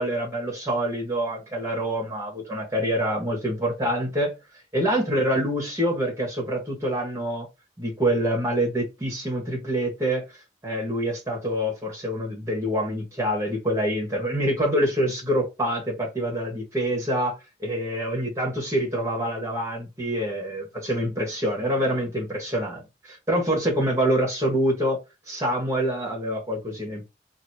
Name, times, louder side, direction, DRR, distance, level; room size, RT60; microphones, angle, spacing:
voice 1, 0.0-4.3 4.7-7.5 7.8-10.4 10.6-25.0 25.3-27.1, equal, 15° right, 1.6 m, -26 dB
4.0 x 2.7 x 2.9 m
head